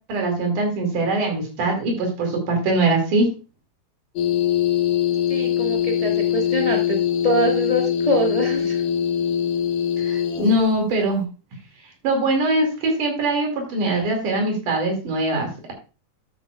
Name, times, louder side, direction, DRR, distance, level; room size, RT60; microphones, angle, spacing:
voice 1, 0.1-3.3 10.0-11.2 12.0-15.7, right 2 dB, 75° right, 2 dB, 3.9 m, -22 dB
sound 1, 4.2-10.7, left 9 dB, 85° left, 2.6 m, -22 dB
voice 2, 5.3-8.8, right 1 dB, 30° left, 0 dB, 0.6 m, -24 dB
11.5 x 9.0 x 2.3 m, 0.33 s
omnidirectional pair, 3.7 m